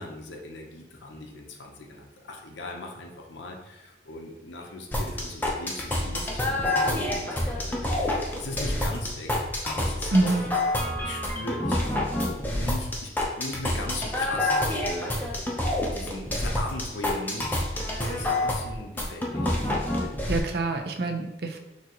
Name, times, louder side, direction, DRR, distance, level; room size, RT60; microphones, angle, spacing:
voice 1, 0.0-9.3 9.6-10.4 11.0-11.9 12.4-13.1 13.4-15.5 15.9-19.5 20.2-20.4, left 2 dB, 85° left, 1 dB, 0.7 m, -38 dB
sound 1, 4.9-20.4, left 1 dB, 10° left, 0.6 m, -28 dB
voice 2, 10.1-10.5 20.3-21.6, right 2 dB, 60° right, 6 dB, 0.5 m, -25 dB
6.0 x 2.8 x 2.9 m, 1.0 s
head